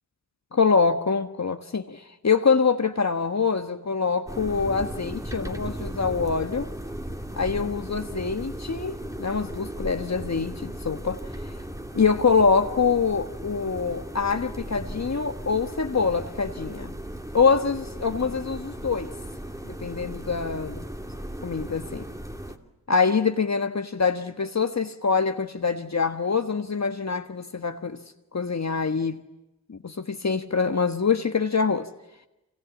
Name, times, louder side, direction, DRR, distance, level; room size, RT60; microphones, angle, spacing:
voice 1, 0.5-6.7 7.4-11.2 11.9-17.0 17.3-19.1 19.7-20.8 21.4-22.0 22.9-28.0 28.3-29.2 29.7-31.9, left 5 dB, 40° left, 1.5 m, -25 dB
sound 1, 4.3-22.6, right 1 dB, 10° right, 2.9 m, -36 dB
27.0 x 25.5 x 8.5 m
supercardioid pair, 40°, 41 cm